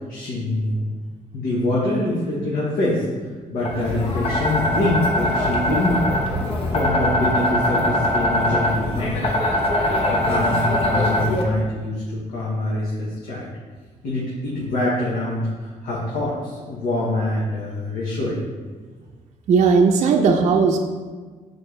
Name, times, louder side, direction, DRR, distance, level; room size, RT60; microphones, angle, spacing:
voice 1, 0.1-0.9 1.3-3.0 3.5-6.1 6.7-9.3 10.1-13.5 14.0-18.4, left 1 dB, 80° left, -6 dB, 1.2 m, -25 dB
sound 1, 3.6-11.4, left 1 dB, 40° left, 0.9 m, -22 dB
voice 2, 19.5-20.8, right 5 dB, 55° right, 2 dB, 0.5 m, -16 dB
7.0 x 4.3 x 3.2 m, 1.4 s
cardioid pair, 170°, 14 cm